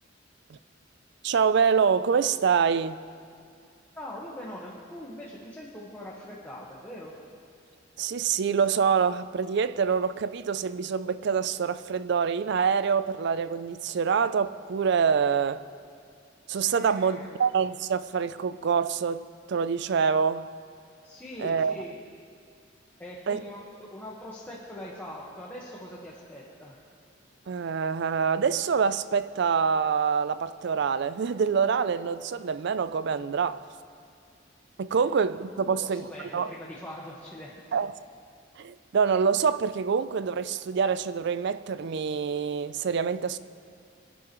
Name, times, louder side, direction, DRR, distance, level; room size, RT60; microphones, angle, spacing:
voice 1, 1.2-3.0 8.0-15.6 16.5-20.5 21.4-21.7 23.3-23.4 27.5-33.6 34.8-36.5 37.7-37.9 38.6-43.4, right 6 dB, 60° right, 0.4 m, -26 dB
voice 2, 3.9-7.1 16.7-17.4 21.0-22.0 23.0-26.8 34.9-35.1 35.6-37.5, left 1 dB, 10° left, 1.3 m, -42 dB
24.0 x 11.0 x 3.1 m
head